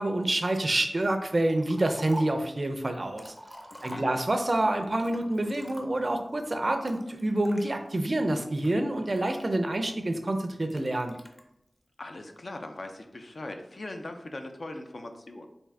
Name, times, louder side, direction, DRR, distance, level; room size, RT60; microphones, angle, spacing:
voice 1, 0.0-3.3 3.8-11.2, right 1 dB, 45° right, 6 dB, 0.4 m, -27 dB
Liquid, 1.5-2.5 2.9-4.5 4.9-6.2 6.9-7.6 8.2-9.9 10.7-11.4, equal, 10° left, 0.5 m, -45 dB
voice 2, 3.7-4.1 12.0-15.5, left 2 dB, 60° left, 5 dB, 0.4 m, -40 dB
3.6 x 2.6 x 3.2 m, 0.82 s
wide cardioid pair, 65°, 0 cm